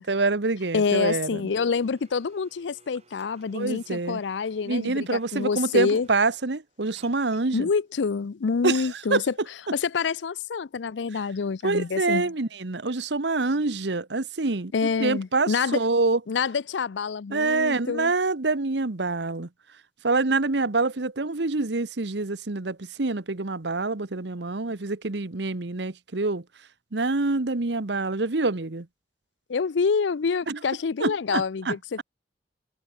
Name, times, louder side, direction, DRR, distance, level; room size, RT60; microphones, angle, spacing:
voice 1, 0.0-1.4 3.5-4.2 4.7-7.7 8.6-8.8 9.1-9.2 11.6-16.2 17.3-19.5 20.0-26.4 26.9-28.9 30.5-30.6 31.0-32.0, right 3 dB, 75° right, 1.2 m, -26 dB
voice 2, 0.7-6.1 7.5-9.3 9.7-12.3 14.7-15.8 16.3-18.1 29.5-32.0, left 5 dB, 85° left, 0.5 m, -27 dB
Domestic sounds home sounds, 1.5-8.0, right 4 dB, 35° right, 7.6 m, -58 dB
head